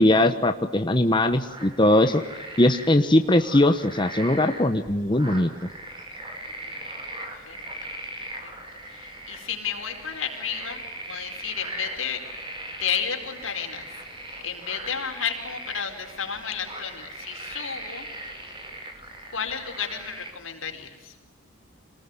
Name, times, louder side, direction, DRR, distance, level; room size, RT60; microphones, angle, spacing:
voice 1, 0.0-2.2 2.6-5.5, left 1 dB, 25° left, 7 dB, 1.1 m, -20 dB
sound 1, 1.1-20.3, right 1 dB, 25° right, 5.0 m, -39 dB
voice 2, 6.4-7.0 7.3-7.9 8.4-8.5 8.9-12.5 12.8-13.9 14.4-18.1 19.3-21.2, left 7 dB, 85° left, 3 dB, 4.8 m, -32 dB
26.5 x 20.0 x 9.8 m, 1.2 s
head